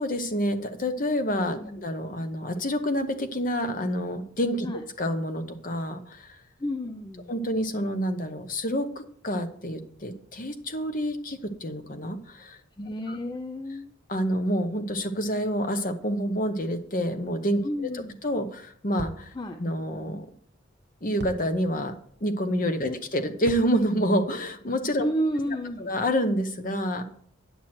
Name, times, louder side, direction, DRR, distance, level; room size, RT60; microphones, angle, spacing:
voice 1, 0.0-4.7 5.0-6.3 7.3-8.9 9.2-12.6 13.1-13.2 14.1-17.6 18.2-19.3 19.6-20.3 21.0-21.9 22.2-25.1 25.8-27.0, equal, 40° left, 8 dB, 1.0 m, -28 dB
voice 2, 6.6-7.3 12.8-13.9 17.6-18.2 19.3-19.6 22.8-23.0 25.0-25.9, equal, 20° left, 6 dB, 0.4 m, -31 dB
sound 1, 19.0-19.6 21.2-22.0 23.4-24.3, right 1 dB, 50° right, 0.9 m, -41 dB
9.2 x 7.6 x 4.3 m, 0.62 s
head